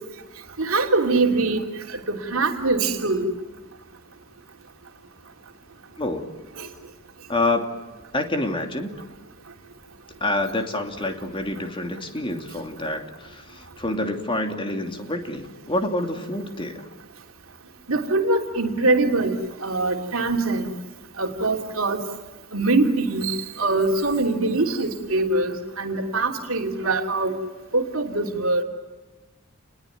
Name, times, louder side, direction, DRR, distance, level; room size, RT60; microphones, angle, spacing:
voice 1, 0.6-3.3 6.6-6.7 17.9-19.3 19.6-20.7 21.2-22.0 22.5-27.4 27.7-28.6, right 2 dB, 70° right, 3 dB, 3.1 m, -23 dB
voice 2, 6.0-6.3 7.3-7.8 8.1-9.0 10.2-16.9, left 2 dB, 25° left, 5 dB, 2.9 m, -27 dB
29.5 x 21.5 x 9.3 m, 1.2 s
head